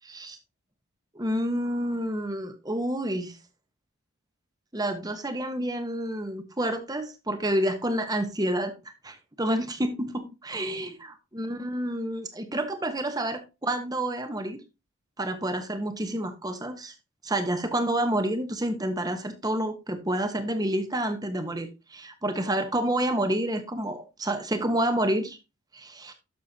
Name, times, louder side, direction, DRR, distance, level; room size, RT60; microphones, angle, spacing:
voice 1, 0.0-0.4 1.1-3.4 4.7-8.7 9.0-14.6 15.2-16.9 17.2-25.4 25.7-26.1, right 1 dB, 20° right, 7 dB, 1.1 m, -29 dB
12.0 x 6.6 x 2.8 m, 0.27 s
head